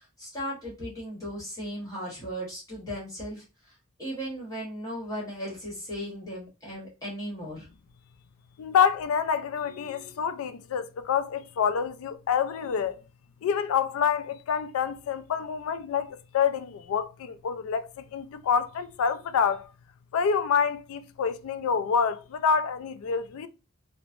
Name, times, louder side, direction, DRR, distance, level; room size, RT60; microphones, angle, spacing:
voice 1, 0.0-7.7, equal, 15° left, 1.2 m, -37 dB
voice 2, 8.6-13.0 13.4-19.7 20.1-23.5, left 7 dB, 70° left, 0.3 m, -27 dB
3.0 x 2.0 x 2.5 m
head